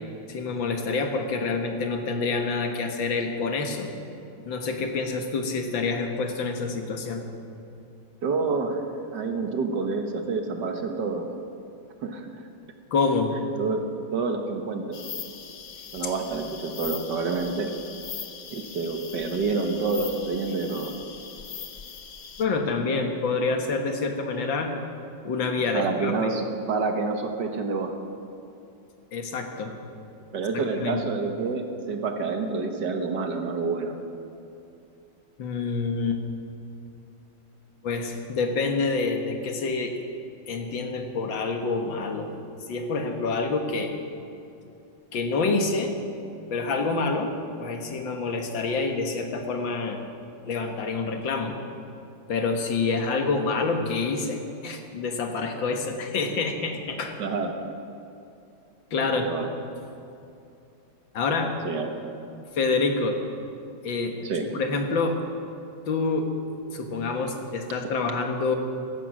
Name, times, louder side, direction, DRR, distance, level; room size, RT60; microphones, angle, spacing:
voice 1, 0.3-3.9 4.4-7.3 12.9-13.3 22.4-24.7 25.2-26.1 29.1-29.7 30.8-31.0 35.4-36.2 37.8-39.9 40.5-42.3 42.7-43.9 45.1-46.0 46.5-47.3 47.6-50.0 50.4-51.6 52.3-57.1 58.9-59.3 61.1-61.5 62.5-63.2 63.8-65.2 65.9-66.3 66.7-68.5, left 4 dB, 70° left, 4 dB, 2.1 m, -27 dB
voice 2, 8.2-8.8 9.1-11.3 12.0-12.4 13.6-13.8 14.1-15.0 15.9-17.7 18.5-20.9 25.7-27.9 30.3-34.0 57.2-57.6 59.1-59.5 61.6-61.9 64.2-64.5, right 4 dB, 65° right, 5 dB, 1.8 m, -28 dB
sound 1, 14.9-22.5, left 6 dB, 50° left, 0.8 m, -40 dB
16.5 x 13.5 x 6.2 m, 2.7 s
omnidirectional pair, 2.2 m